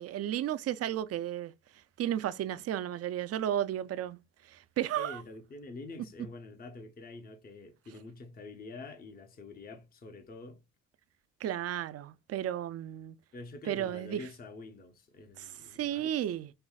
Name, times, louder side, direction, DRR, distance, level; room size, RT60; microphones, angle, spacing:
voice 1, 0.0-1.5 2.0-4.2 4.5-5.2 11.4-13.2 13.7-14.2 15.4-16.5, right 11 dB, 55° right, 0.4 m, -33 dB
voice 2, 5.0-10.6 13.3-16.1, left 3 dB, 30° left, 0.7 m, -46 dB
5.3 x 2.0 x 2.3 m
cardioid pair, 90°, 30 cm